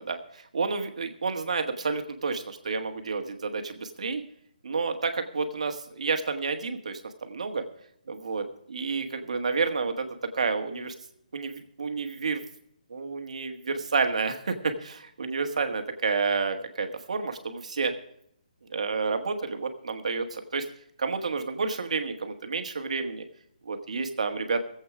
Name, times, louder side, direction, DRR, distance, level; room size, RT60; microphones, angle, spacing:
voice 1, 0.1-4.2 4.6-7.6 8.1-10.1 10.3-10.9 11.3-12.4 12.9-17.9 18.7-20.7 21.0-23.2 23.6-24.6, right 4 dB, 50° right, 7 dB, 1.5 m, -30 dB
18.5 x 8.1 x 4.9 m, 0.71 s
hypercardioid pair, 180°, 5 cm